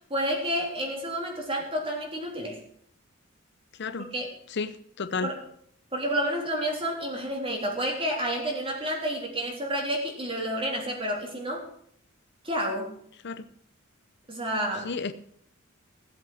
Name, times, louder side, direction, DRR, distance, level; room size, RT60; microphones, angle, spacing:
voice 1, 0.1-2.6 4.0-4.3 5.2-5.4 5.9-11.7 12.4-12.9 14.3-14.9, equal, 25° right, 0 dB, 3.6 m, -30 dB
voice 2, 3.8-4.1 4.5-5.3 13.2-13.5 14.8-15.1, left 4 dB, 55° left, 12 dB, 0.7 m, -32 dB
16.5 x 7.8 x 6.4 m, 0.65 s
head